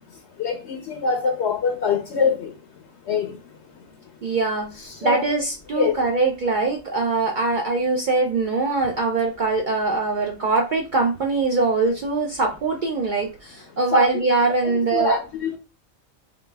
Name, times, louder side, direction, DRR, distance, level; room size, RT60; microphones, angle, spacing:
voice 1, 0.1-4.0 4.2-4.3 4.8-5.2 5.7-6.0 13.9-14.1 14.6-15.6, left 4 dB, 65° left, 0.8 m, -25 dB
voice 2, 4.2-15.1, right 3 dB, 65° right, 0.4 m, -22 dB
3.9 x 2.4 x 3.3 m
omnidirectional pair, 1.4 m